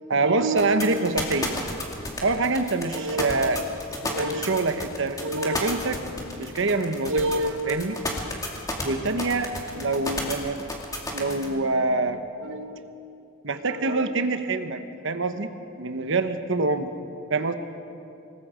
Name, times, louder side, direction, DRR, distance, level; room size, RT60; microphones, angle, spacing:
voice 1, 0.1-1.6 2.2-3.6 4.0-6.0 6.4-8.1 8.8-10.6 11.1-12.9 13.4-15.5 15.8-16.9 17.3-17.5, right 3 dB, 65° right, 8 dB, 1.1 m, -25 dB
sound 1, 0.6-11.5, left 2 dB, 20° left, 2.7 m, -31 dB
26.0 x 19.5 x 5.1 m, 2.6 s
head